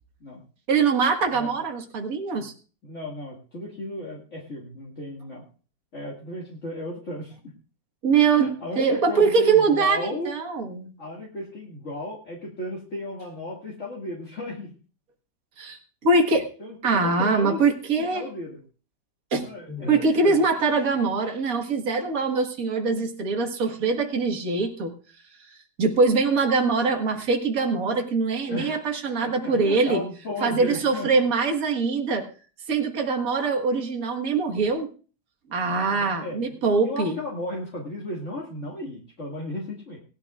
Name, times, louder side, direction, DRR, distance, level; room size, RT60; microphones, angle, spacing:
voice 1, 0.7-2.5 8.0-10.9 15.6-16.5 16.8-18.3 19.3-24.9 25.8-30.0 30.4-32.3 32.7-34.9 35.5-37.2, right 4 dB, 55° right, 3 dB, 2.1 m, -23 dB
voice 2, 2.8-5.5 5.9-7.4 8.1-10.3 11.0-14.7 16.3-17.6 18.0-18.6 19.5-20.5 28.5-28.8 29.2-31.3 35.6-40.0, left 1 dB, 45° left, -4 dB, 2.5 m, -35 dB
19.5 x 12.5 x 2.4 m, 0.38 s
omnidirectional pair, 1.8 m